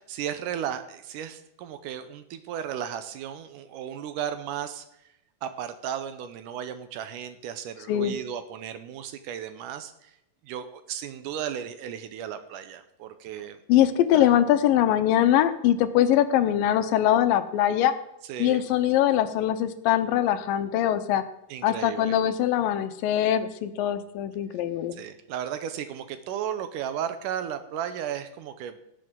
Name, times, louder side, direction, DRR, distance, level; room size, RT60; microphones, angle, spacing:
voice 1, 0.0-4.9 5.4-10.1 10.4-13.6 14.1-14.3 18.3-18.6 21.5-22.2 24.9-28.8, right 9 dB, 75° right, 10 dB, 2.1 m, -35 dB
voice 2, 13.7-17.9 18.4-21.2 21.6-25.0, left 11 dB, 85° left, 10 dB, 2.5 m, -22 dB
17.5 x 7.7 x 3.7 m, 0.85 s
omnidirectional pair, 4.0 m